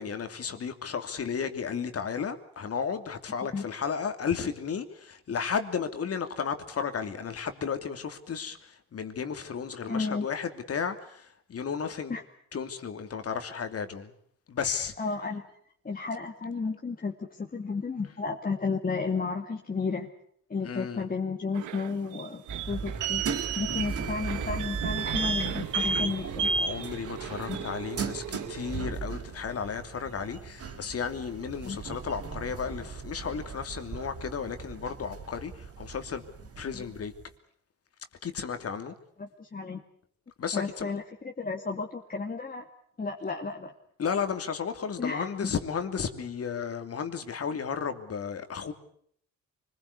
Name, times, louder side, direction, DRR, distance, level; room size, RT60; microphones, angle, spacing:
voice 1, 0.0-12.1 12.5-14.1 14.5-14.9 20.6-21.1 23.7-23.8 26.6-37.1 38.2-38.9 40.4-40.9 44.0-48.7, left 6 dB, 50° left, 2.9 m, -33 dB
voice 2, 9.9-10.3 12.1-12.2 15.0-15.4 15.8-20.1 20.5-23.2 23.6-26.5 27.5-27.6 31.6-31.8 36.7-36.8 39.2-39.8 40.5-42.6 43.0-43.7 45.0-45.5, left 4 dB, 30° left, 2.3 m, -32 dB
sound 1, 21.5-28.8, right 5 dB, 80° right, 1.6 m, -33 dB
sound 2, 22.5-37.3, right 5 dB, 50° right, 3.9 m, -38 dB
25.5 x 21.0 x 8.4 m
cardioid pair, 90°, 30 cm